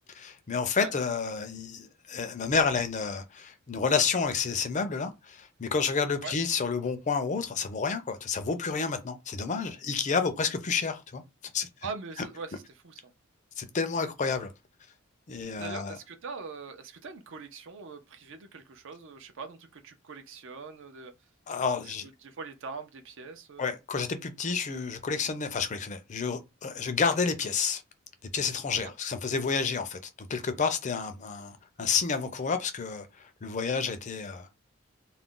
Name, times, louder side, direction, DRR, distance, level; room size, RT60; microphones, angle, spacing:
voice 1, 0.1-11.2 11.5-11.7 13.6-14.5 15.3-16.0 21.5-22.1 23.6-27.8 28.3-33.1 33.4-34.5, left 5 dB, 35° left, 0.4 m, -30 dB
voice 2, 11.8-13.1 15.6-21.1 21.6-23.7 28.8-28.9, right 4 dB, 60° right, 0.5 m, -42 dB
2.4 x 2.1 x 3.6 m
head